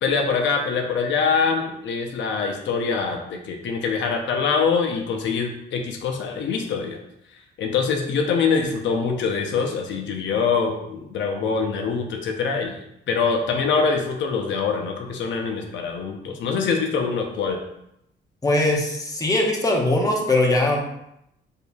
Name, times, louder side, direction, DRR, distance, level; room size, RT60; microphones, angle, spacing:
voice 1, 0.0-7.0 7.6-12.8 13.1-17.6, left 5 dB, 70° left, 2 dB, 0.7 m, -24 dB
voice 2, 18.4-20.8, left 1 dB, 20° left, -1 dB, 1.0 m, -21 dB
6.6 x 2.7 x 2.3 m, 0.80 s
cardioid pair, 90°, 20 cm